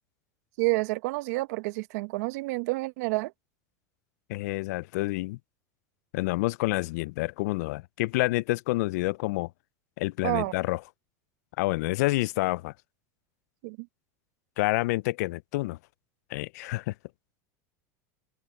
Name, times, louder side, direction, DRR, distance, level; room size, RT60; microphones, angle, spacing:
voice 1, 0.6-3.3 10.2-10.5 13.6-13.9, right 24 dB, 70° right, 1.0 m, -29 dB
voice 2, 4.3-5.4 6.1-9.5 10.0-10.8 11.6-12.7 14.6-15.8 16.3-16.9, left 21 dB, 75° left, 0.4 m, -28 dB
open air
supercardioid pair, 110°, 9 cm